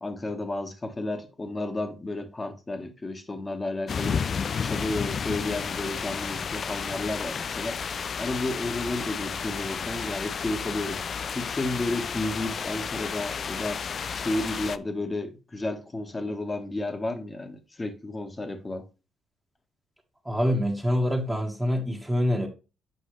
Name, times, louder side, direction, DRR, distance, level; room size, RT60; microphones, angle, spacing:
voice 1, 0.0-4.2 4.6-7.8 8.2-11.0 11.3-13.8 14.1-18.9, left 2 dB, 25° left, 1.6 m, -32 dB
sound 1, 3.9-14.8, left 6 dB, 50° left, 0.4 m, -32 dB
voice 2, 20.2-22.5, equal, 10° right, 1.7 m, -25 dB
8.2 x 5.3 x 3.3 m
supercardioid pair, 55°, 0 cm